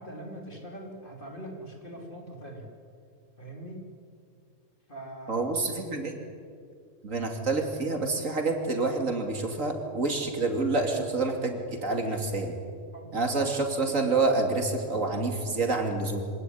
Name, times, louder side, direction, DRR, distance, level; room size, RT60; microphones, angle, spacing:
voice 1, 0.0-2.7 3.4-3.8 4.9-5.5 7.9-8.0 12.9-13.5, right 1 dB, 40° left, 1 dB, 4.0 m, -42 dB
voice 2, 5.3-6.2 7.0-12.5 13.1-16.2, right 3 dB, 70° right, 4 dB, 3.1 m, -28 dB
25.0 x 18.0 x 9.9 m, 2.3 s
omnidirectional pair, 1.4 m